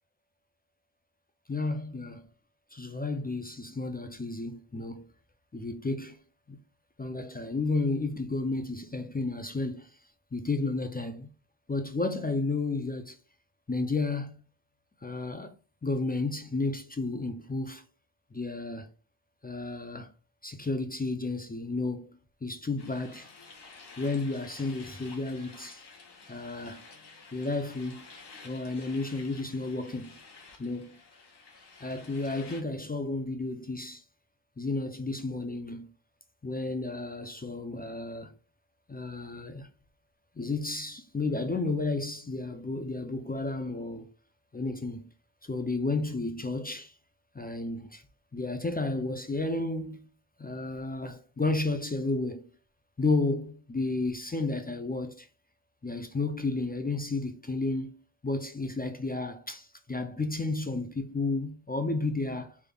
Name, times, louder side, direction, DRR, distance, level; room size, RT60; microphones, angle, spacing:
voice 1, 1.5-2.3 2.7-5.0 5.5-6.2 6.5-6.6 7.0-10.0 10.3-11.3 11.7-13.2 13.7-14.4 15.0-15.5 15.8-17.8 18.3-18.9 19.4-20.1 20.4-23.3 24.0-25.8 26.3-26.8 27.3-28.1 28.4-30.1 30.6-31.0 31.8-34.0 34.6-35.9 36.4-38.3 38.9-39.7 40.4-44.1 44.5-45.1 45.4-46.9 47.3-48.0 48.3-50.0 50.4-52.5 53.0-55.3 55.8-58.0 58.2-62.6, left 3 dB, 20° left, 0.3 m, -32 dB
sound 1, 22.8-32.6, left 4 dB, 55° left, 0.9 m, -51 dB
3.4 x 3.3 x 2.2 m
wide cardioid pair, 105°, 47 cm